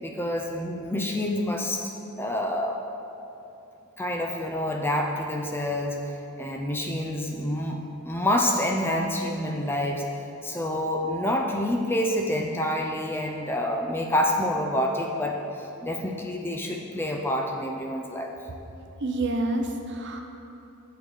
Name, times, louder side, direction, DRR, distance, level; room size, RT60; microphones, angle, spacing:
voice 1, 0.0-1.9 2.2-2.8 4.0-18.4, left 1 dB, 10° left, 1 dB, 0.5 m, -28 dB
voice 2, 19.0-20.2, right 2 dB, 55° right, 4 dB, 0.7 m, -28 dB
7.6 x 4.9 x 6.5 m, 2.9 s
head